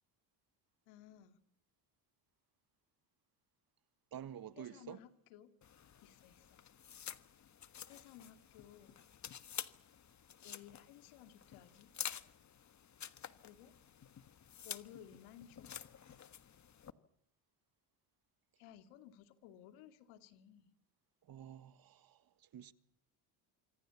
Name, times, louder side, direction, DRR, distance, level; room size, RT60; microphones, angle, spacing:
voice 1, 0.9-1.4 4.6-5.5 6.0-6.6 7.9-9.0 10.4-11.9 13.4-13.8 14.6-15.8 18.6-20.7, left 10 dB, 85° left, 2.6 m, -57 dB
voice 2, 4.1-5.0 21.3-22.2 22.5-22.7, right 10 dB, 45° right, 1.7 m, -49 dB
sound 1, 5.6-16.9, left 9 dB, 35° left, 1.5 m, -50 dB
26.5 x 24.5 x 7.2 m
cardioid pair, 110°, 48 cm